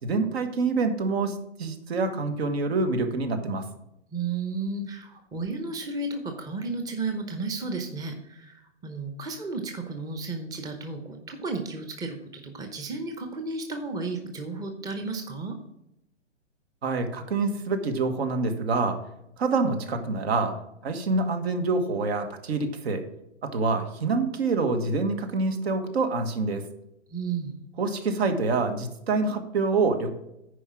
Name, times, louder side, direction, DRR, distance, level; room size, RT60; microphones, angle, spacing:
voice 1, 0.0-3.6 16.8-19.0 19.4-20.5 20.8-23.0 23.4-26.6 27.8-30.1, right 3 dB, 60° right, 7 dB, 1.5 m, -26 dB
voice 2, 4.1-15.6 27.1-27.6, right 3 dB, 10° right, 5 dB, 0.8 m, -33 dB
10.0 x 4.8 x 6.2 m, 0.84 s
hypercardioid pair, 120°, 35 cm